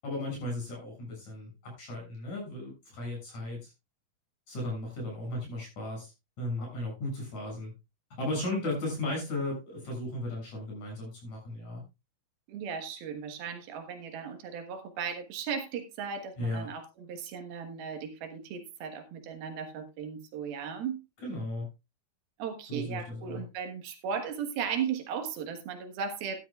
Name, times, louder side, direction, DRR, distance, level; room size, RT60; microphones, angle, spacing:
voice 1, 0.0-3.6 4.5-6.1 6.4-7.7 8.2-11.8 16.4-16.7 21.2-21.7 22.7-23.4, left 1 dB, 50° left, 0 dB, 8.4 m, -35 dB
voice 2, 12.5-21.0 22.4-26.4, right 7 dB, 80° right, 6 dB, 3.4 m, -36 dB
13.0 x 12.5 x 2.4 m, 0.24 s
omnidirectional pair, 4.3 m